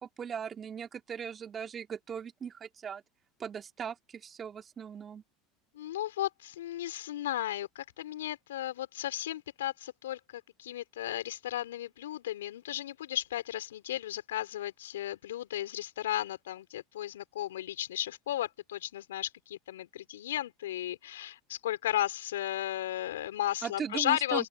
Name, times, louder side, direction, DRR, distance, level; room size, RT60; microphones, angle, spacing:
voice 1, 0.0-3.0 3.4-5.2 23.6-24.5, right 7 dB, 35° right, 4.1 m, -39 dB
voice 2, 5.7-24.5, left 13 dB, 80° left, 3.9 m, -35 dB
open air
hypercardioid pair, 80°, 0 cm